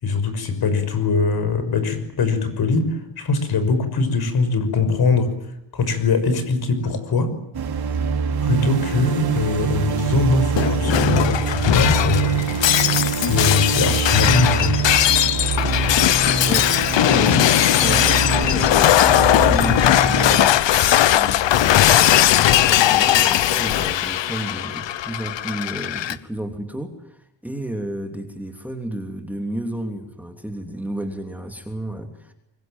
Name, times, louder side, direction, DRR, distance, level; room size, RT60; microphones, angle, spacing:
voice 1, 0.0-5.3 5.7-7.3 8.4-12.4 13.1-14.8, left 4 dB, 55° left, 10 dB, 6.0 m, -22 dB
sound 1, 7.5-20.4, right 5 dB, 55° right, 4.3 m, -24 dB
Shatter, 10.5-26.1, left 12 dB, 70° left, 1.2 m, -18 dB
voice 2, 17.1-17.4 17.8-18.9 19.5-20.6 21.0-22.2 22.5-32.3, right 1 dB, 5° right, 5 dB, 2.9 m, -32 dB
25.5 x 23.0 x 9.0 m, 0.80 s
cardioid pair, 140°, 45 cm